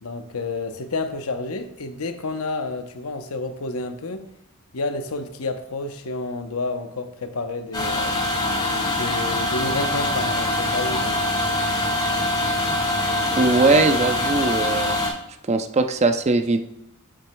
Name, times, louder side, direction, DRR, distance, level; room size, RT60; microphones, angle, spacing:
voice 1, 0.0-4.3 4.7-8.2 8.9-11.2, left 3 dB, 90° left, 8 dB, 0.8 m, -30 dB
sound 1, 7.7-15.1, left 1 dB, 20° left, 1.8 m, -23 dB
voice 2, 13.4-15.0 15.5-16.6, right 3 dB, 30° right, 8 dB, 0.5 m, -20 dB
8.6 x 7.6 x 2.2 m, 0.83 s
head